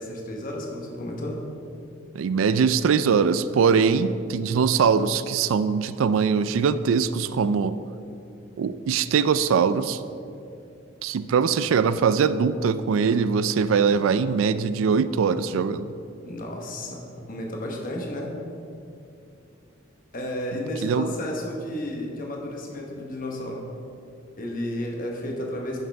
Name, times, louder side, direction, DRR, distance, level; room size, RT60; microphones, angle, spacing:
voice 1, 0.0-1.4 16.2-17.0 17.3-18.3 20.1-23.6 24.4-25.8, left 1 dB, 45° left, 0 dB, 1.2 m, -32 dB
voice 2, 2.1-7.8 8.6-10.0 11.0-15.9 20.8-21.1, right 6 dB, 85° right, 13 dB, 0.3 m, -22 dB
10.5 x 6.5 x 3.4 m, 2.5 s
head